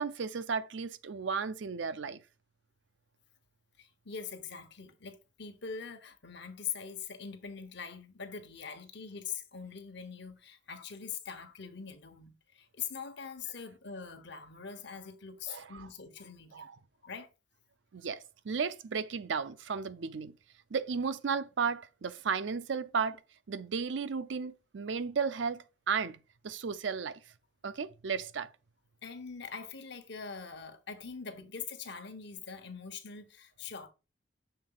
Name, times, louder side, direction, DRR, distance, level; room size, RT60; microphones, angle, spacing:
voice 1, 0.0-2.2 15.5-15.9 16.5-16.7 17.9-20.3 20.7-23.2 23.5-26.2 26.4-27.2 27.6-28.5, right 5 dB, 70° right, 0.5 m, -34 dB
voice 2, 3.8-16.7 17.0-17.3 29.0-33.9, left 6 dB, 65° left, 1.1 m, -43 dB
6.7 x 3.8 x 3.9 m
head